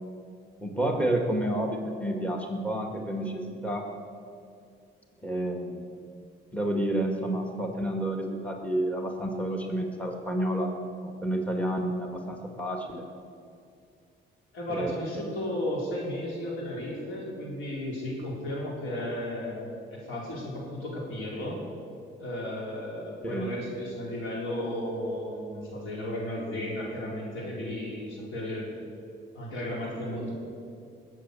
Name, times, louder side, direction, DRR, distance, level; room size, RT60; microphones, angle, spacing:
voice 1, 0.6-3.9 5.2-5.9 6.5-10.7 11.0-13.0 14.7-14.9 23.2-23.5, right 1 dB, 5° left, 2 dB, 1.9 m, -30 dB
voice 2, 14.5-19.7 20.0-21.6 22.2-28.7 29.3-30.3, left 1 dB, 80° left, -3 dB, 4.5 m, -34 dB
20.0 x 7.9 x 7.0 m, 2.4 s
cardioid pair, 90°, 20 cm